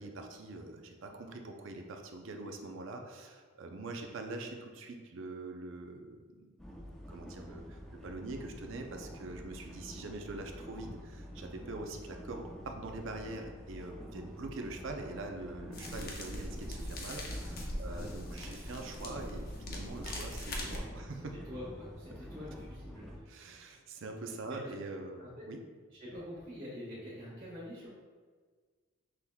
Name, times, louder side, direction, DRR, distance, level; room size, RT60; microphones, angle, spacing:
voice 1, 0.0-6.6 7.1-21.3 23.3-25.6, right 2 dB, 65° right, 4 dB, 0.5 m, -44 dB
sound 1, 6.6-23.2, equal, ahead, 0.4 m, -48 dB
sound 2, 15.7-20.8, left 1 dB, 45° left, 0.7 m, -41 dB
voice 2, 17.8-18.2 21.4-23.4 24.4-24.8 25.2-25.5 25.9-27.9, left 1 dB, 45° right, -12 dB, 1.4 m, -46 dB
5.9 x 3.5 x 2.3 m, 1.5 s
head